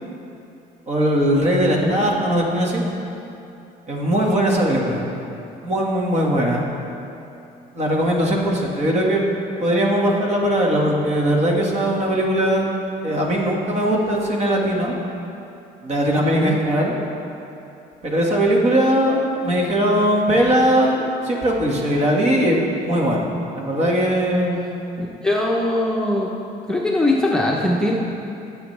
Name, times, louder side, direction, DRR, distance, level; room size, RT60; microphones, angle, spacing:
voice 1, 0.9-2.8 3.9-5.0 5.6-6.7 7.7-9.2 9.6-12.6 13.0-14.9 15.8-16.9 18.0-23.3 23.6-24.6, equal, 40° right, -2 dB, 1.9 m, -20 dB
voice 2, 16.2-16.6 25.0-26.3 26.7-28.0, left 1 dB, 5° left, -4 dB, 0.9 m, -21 dB
17.5 x 7.2 x 3.4 m, 2.8 s
cardioid pair, 110°, 17 cm